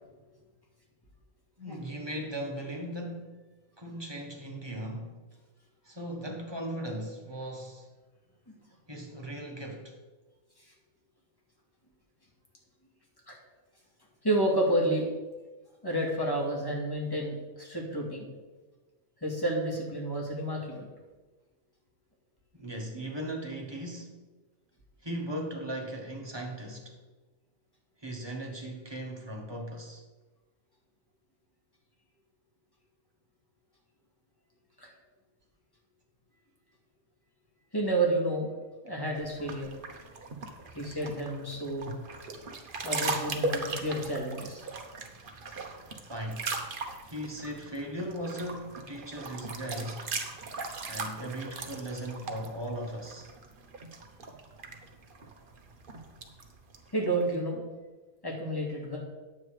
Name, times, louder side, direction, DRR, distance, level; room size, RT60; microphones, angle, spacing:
voice 1, 1.6-3.4 3.8-5.1 5.8-7.9 8.9-10.0 22.5-24.2 25.0-27.0 28.0-30.0 46.1-46.5 47.0-50.1 50.8-53.3, right 1 dB, 20° right, 0 dB, 1.5 m, -38 dB
voice 2, 14.2-15.0 15.8-18.3 19.2-20.9 34.8-34.9 37.7-38.5 38.8-39.7 40.7-41.9 42.8-44.6 56.9-57.6 58.2-59.0, right 1 dB, 15° left, -2 dB, 2.2 m, -30 dB
sound 1, 39.2-57.3, right 3 dB, 40° right, 1.0 m, -39 dB
9.5 x 7.5 x 4.8 m, 1.2 s
omnidirectional pair, 1.5 m